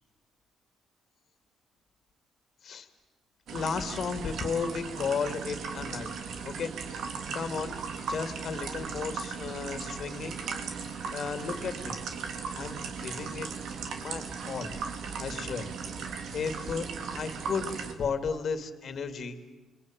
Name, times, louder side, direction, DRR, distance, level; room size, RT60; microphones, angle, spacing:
voice 1, 3.5-6.1 6.4-6.7 7.3-7.8 8.1-10.4 10.8-12.0 12.5-13.5 13.7-14.8 15.2-15.7 16.3-16.9 17.1-19.4, left 5 dB, 55° left, 10 dB, 2.7 m, -34 dB
sound 1, 3.5-17.9, right 5 dB, 70° right, 3.1 m, -37 dB
30.0 x 21.5 x 9.2 m, 1.1 s
cardioid pair, 90°, 0 cm